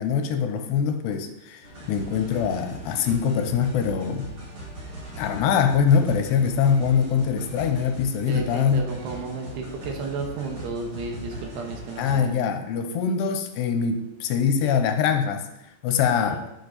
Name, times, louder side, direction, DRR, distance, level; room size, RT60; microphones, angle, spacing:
voice 1, 0.0-4.3 5.2-8.9 12.0-15.5 15.8-16.4, left 7 dB, 85° left, 6 dB, 2.8 m, -23 dB
sound 1, 1.6-12.1, right 1 dB, 45° right, 5.2 m, -40 dB
voice 2, 8.2-12.3 16.3-16.4, right 3 dB, 80° right, 3 dB, 3.3 m, -33 dB
10.5 x 6.8 x 4.1 m, 0.88 s
omnidirectional pair, 4.8 m